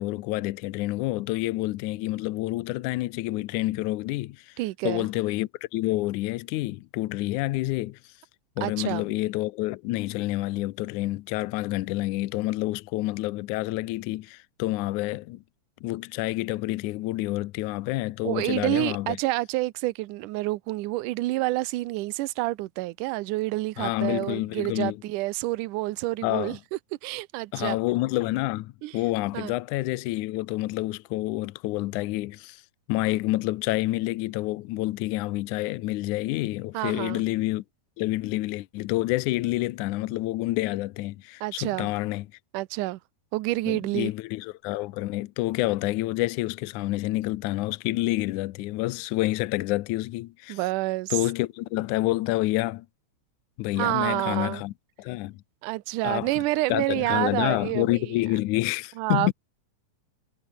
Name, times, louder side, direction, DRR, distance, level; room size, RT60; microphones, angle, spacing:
voice 1, 0.0-4.5 4.8-8.0 8.6-15.4 15.8-19.2 23.8-25.0 26.2-26.6 27.5-32.6 32.9-37.6 38.0-42.3 43.7-50.6 51.1-52.9 53.6-54.7 55.0-55.4 56.0-56.3 56.7-59.3, left 18 dB, 75° left, 2.0 m, -28 dB
voice 2, 4.6-5.1 8.6-9.0 18.2-26.6 27.0-27.8 28.8-29.0 29.3-29.5 36.7-37.2 41.4-41.9 42.5-43.0 43.3-44.1 50.5-51.1 53.8-54.6 55.6-58.1 59.0-59.3, right 19 dB, 75° right, 2.2 m, -28 dB
omnidirectional pair, 4.0 m